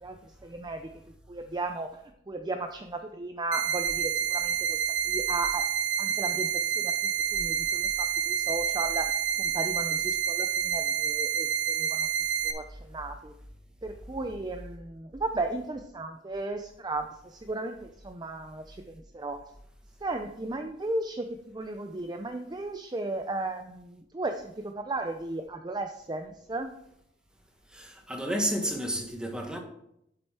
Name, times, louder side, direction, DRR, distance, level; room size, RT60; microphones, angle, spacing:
voice 1, 0.4-0.9 1.3-2.0 2.3-4.8 5.0-5.6 6.0-12.1 12.4-13.3 13.8-19.4 20.0-26.7, right 2 dB, 25° right, 0.5 m, -35 dB
sound 1, 3.5-12.5, right 8 dB, 80° right, 0.9 m, -28 dB
voice 2, 27.7-29.6, equal, 5° right, 1.5 m, -31 dB
7.8 x 7.8 x 4.4 m
head